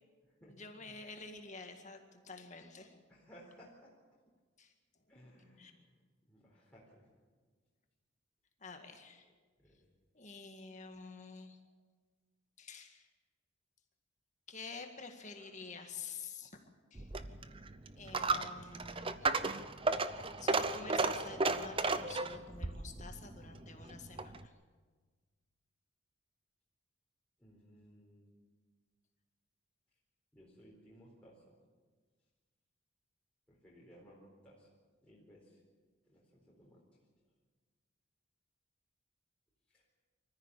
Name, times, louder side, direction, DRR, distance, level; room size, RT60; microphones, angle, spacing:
voice 1, 0.4-3.0 4.6-4.7 5.3-5.7 8.6-9.3 10.1-11.6 12.6-13.1 14.5-16.6 16.9-17.1 18.0-19.4 19.9-24.5, left 4 dB, 35° left, 5 dB, 1.9 m, -49 dB
voice 2, 3.1-3.9 5.1-5.8 6.3-7.0 9.6-9.7 27.4-28.4 30.3-31.5 33.5-34.7 35.0-35.6 36.1-36.8 39.7-39.8, equal, 5° left, -6 dB, 4.1 m, -59 dB
Coin (dropping), 16.9-24.5, right 3 dB, 25° right, 0.7 m, -35 dB
25.0 x 14.0 x 8.4 m, 1.4 s
head